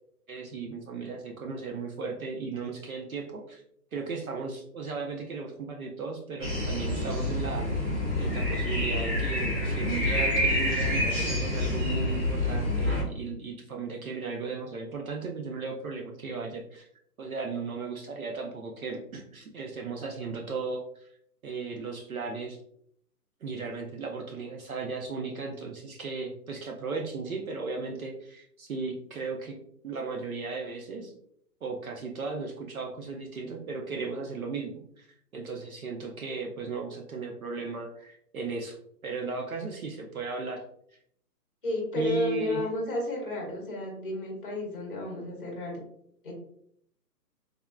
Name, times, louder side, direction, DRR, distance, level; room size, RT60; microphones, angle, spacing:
voice 1, 0.3-3.6 3.9-7.7 8.2-16.9 17.2-21.1 21.4-22.6 23.4-29.6 29.8-31.1 31.6-38.8 39.0-40.6 41.9-42.7, right 4 dB, 60° right, 1 dB, 0.5 m, -36 dB
sound 1, 6.4-13.0, left 1 dB, 40° right, 1.1 m, -27 dB
voice 2, 41.6-45.8 46.2-46.3, left 2 dB, 35° left, -1 dB, 0.7 m, -32 dB
3.4 x 2.3 x 2.2 m, 0.69 s
hypercardioid pair, 170°, 49 cm